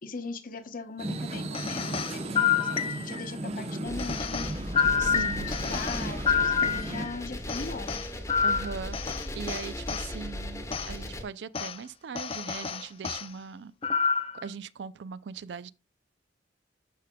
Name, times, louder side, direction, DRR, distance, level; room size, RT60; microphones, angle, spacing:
voice 1, 0.0-4.5 4.9-7.9, left 3 dB, 50° left, 0.9 m, -40 dB
sound 1, 1.0-7.1, right 2 dB, 35° right, 0.8 m, -36 dB
sound 2, 1.5-3.3 4.0-7.2 7.5-10.1 10.7-10.9 11.5-11.8 12.2-13.3 13.8-14.4, left 7 dB, 30° left, 0.4 m, -28 dB
sound 3, 3.8-11.2, left 1 dB, 15° left, 1.1 m, -37 dB
voice 2, 5.0-5.6 8.4-13.7 14.4-15.7, right 6 dB, 70° right, 0.4 m, -40 dB
12.5 x 4.9 x 2.2 m
head